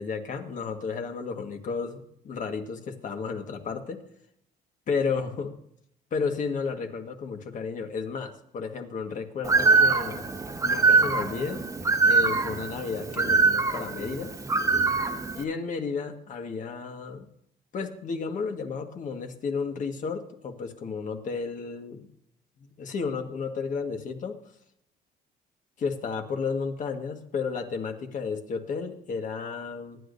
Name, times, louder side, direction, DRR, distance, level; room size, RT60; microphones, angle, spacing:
voice 1, 0.0-4.0 4.9-5.6 6.1-10.2 10.6-11.7 12.0-14.3 15.3-17.3 17.7-22.1 22.6-24.4 25.8-30.0, left 5 dB, 50° left, 4 dB, 1.7 m, -32 dB
Bird, 9.4-15.4, right 4 dB, 20° right, 1.3 m, -23 dB
24.0 x 10.0 x 2.7 m, 0.74 s
cardioid pair, 110°, 17 cm